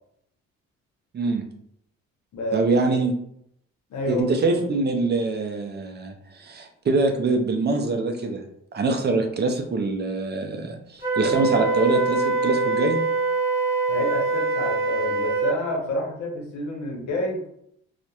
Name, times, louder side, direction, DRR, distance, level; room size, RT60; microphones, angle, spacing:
voice 1, 1.1-1.4 2.5-3.1 4.1-8.4 8.7-13.0, right 3 dB, 35° right, 4 dB, 0.4 m, -24 dB
voice 2, 2.3-2.8 3.9-4.2 13.9-17.4, left 1 dB, 75° left, 0 dB, 0.8 m, -29 dB
Wind instrument woodwind instrument, 11.0-15.6, right 4 dB, 5° right, 1.2 m, -24 dB
2.8 x 2.1 x 2.3 m, 0.72 s
cardioid pair, 90°, 30 cm